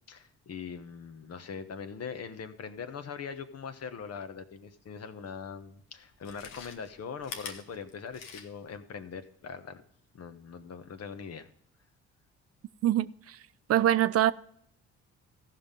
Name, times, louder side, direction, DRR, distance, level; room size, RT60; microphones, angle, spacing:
voice 1, 0.1-9.8 10.1-11.5, left 6 dB, 55° left, 1.2 m, -41 dB
Chewing mastication, 6.1-8.8 9.1-9.2, left 6 dB, 85° left, 1.3 m, -44 dB
voice 2, 12.8-13.4 13.7-14.3, right 12 dB, 50° right, 0.5 m, -24 dB
14.5 x 5.8 x 5.3 m
supercardioid pair, 60°, 31 cm